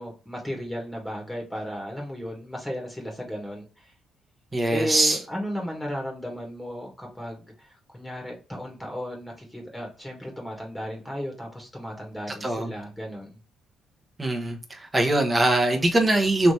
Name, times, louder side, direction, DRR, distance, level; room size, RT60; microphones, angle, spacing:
voice 1, 0.0-3.9 4.7-13.4, equal, 10° left, 1.5 m, -35 dB
voice 2, 4.5-5.2 12.4-12.7 14.2-16.5, right 1 dB, 20° right, 1.0 m, -22 dB
3.4 x 2.9 x 4.1 m
cardioid pair, 90°, 0 cm